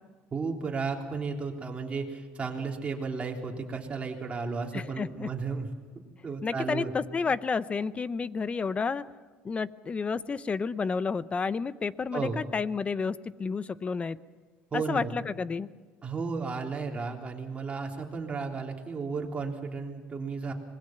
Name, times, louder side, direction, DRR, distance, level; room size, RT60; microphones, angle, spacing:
voice 1, 0.3-5.7 6.2-6.9 12.1-12.4 14.7-15.1 16.0-20.5, right 4 dB, 25° right, 1 dB, 3.4 m, -33 dB
voice 2, 4.7-5.3 6.4-9.1 9.4-14.2 14.7-15.7, left 5 dB, 25° left, 17 dB, 0.7 m, -31 dB
26.0 x 20.0 x 5.9 m, 1.5 s
cardioid pair, 125°, 5 cm